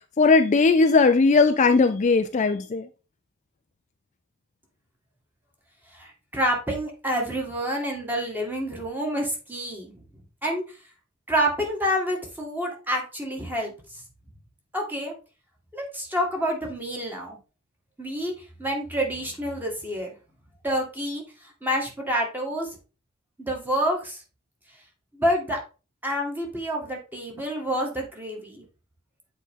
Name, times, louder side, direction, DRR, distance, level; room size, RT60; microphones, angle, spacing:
voice 1, 0.2-2.9, left 4 dB, 35° left, 0.4 m, -18 dB
voice 2, 5.9-9.9 10.4-10.6 11.3-13.7 14.7-15.1 15.7-17.4 18.0-18.3 18.6-20.1 20.6-21.2 21.6-22.7 23.4-24.2 25.1-25.6 26.0-28.6, equal, 10° right, 1.9 m, -28 dB
8.3 x 4.3 x 3.7 m
head